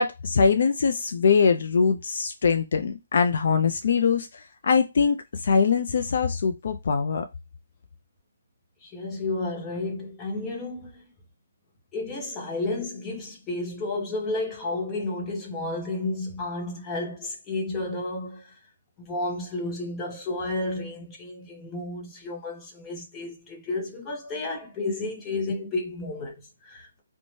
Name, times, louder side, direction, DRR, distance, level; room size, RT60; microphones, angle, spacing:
voice 1, 0.0-7.3, left 5 dB, 50° left, 0.3 m, -22 dB
voice 2, 8.8-11.0 11.9-18.5 19.0-27.0, left 2 dB, 10° left, 0.6 m, -32 dB
2.7 x 2.1 x 3.0 m
hypercardioid pair, 170°, 0 cm